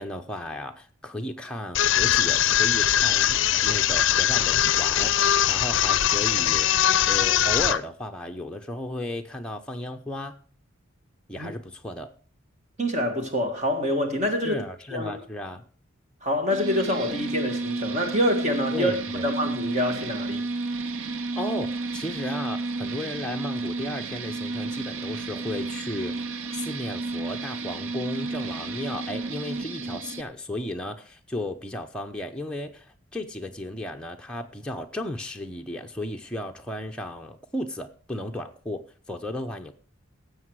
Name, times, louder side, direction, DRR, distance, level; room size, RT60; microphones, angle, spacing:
voice 1, 0.0-3.4 3.6-6.7 7.1-10.3 11.3-12.1 14.4-15.6 18.7-19.3 21.3-38.8 39.1-39.7, left 1 dB, 5° left, 0.8 m, -34 dB
sound 1, 1.7-7.8, left 11 dB, 60° left, 0.5 m, -21 dB
voice 2, 12.8-14.6 14.9-15.1 16.2-19.0 19.2-20.4, equal, 35° right, 1.7 m, -26 dB
sound 2, 16.5-30.2, right 3 dB, 70° right, 0.7 m, -32 dB
17.0 x 7.6 x 4.7 m
head